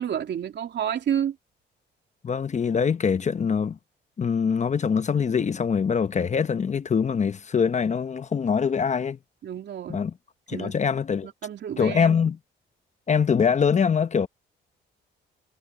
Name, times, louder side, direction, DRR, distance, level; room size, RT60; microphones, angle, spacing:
voice 1, 0.0-1.4 9.4-10.0 10.5-10.7 11.2-12.2, right 9 dB, 65° right, 3.1 m, -30 dB
voice 2, 2.2-3.8 4.2-9.2 9.9-10.1 10.5-11.3 11.8-12.4 13.1-14.3, left 6 dB, 35° left, 0.9 m, -23 dB
cardioid pair, 90°, 20 cm